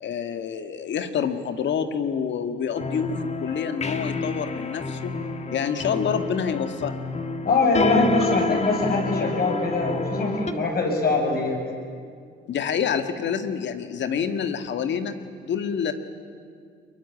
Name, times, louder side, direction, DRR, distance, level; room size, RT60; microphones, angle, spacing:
voice 1, 0.0-5.1 5.5-6.9 12.5-15.1 15.4-15.9, left 7 dB, 65° left, 9 dB, 1.9 m, -27 dB
sound 1, 2.7-10.5, left 4 dB, 35° left, 1.9 m, -30 dB
voice 2, 7.4-11.6, left 3 dB, 50° left, 1 dB, 7.5 m, -22 dB
23.5 x 22.0 x 9.8 m, 2.2 s
cardioid pair, 90°, 20 cm